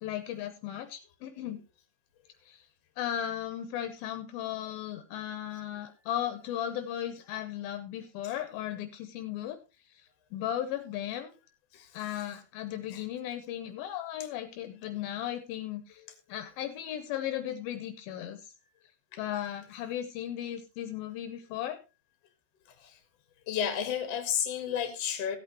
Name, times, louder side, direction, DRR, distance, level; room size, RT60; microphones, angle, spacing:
voice 1, 0.0-1.6 2.5-2.6 3.0-9.6 9.9-11.3 11.9-16.0 16.3-18.5 19.2-21.8, left 11 dB, 80° left, 2.5 m, -36 dB
voice 2, 23.5-25.4, left 9 dB, 50° left, 2.4 m, -31 dB
16.0 x 8.4 x 3.0 m
omnidirectional pair, 4.5 m